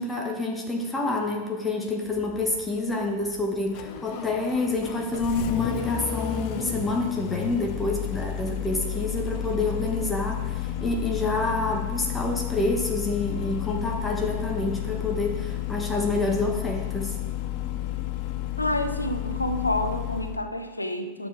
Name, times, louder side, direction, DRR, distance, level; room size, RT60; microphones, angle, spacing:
voice 1, 0.0-17.1, left 2 dB, 10° left, 0 dB, 1.4 m, -28 dB
Engine starting, 2.1-20.5, left 12 dB, 45° left, 0.6 m, -32 dB
voice 2, 18.6-21.3, left 1 dB, 85° left, 8 dB, 0.8 m, -28 dB
11.0 x 6.3 x 4.7 m, 1.2 s
figure-of-eight pair, 90°, 0 cm